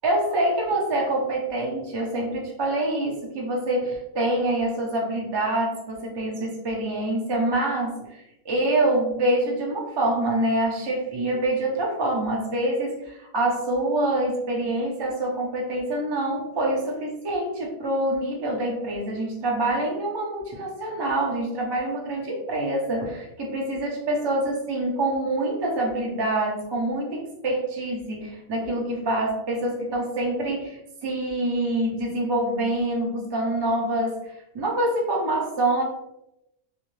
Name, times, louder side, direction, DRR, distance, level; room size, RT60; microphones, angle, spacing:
voice 1, 0.0-34.2 34.5-35.8, right 1 dB, 40° right, -1 dB, 0.4 m, -26 dB
2.6 x 2.5 x 3.1 m, 0.84 s
omnidirectional pair, 1.5 m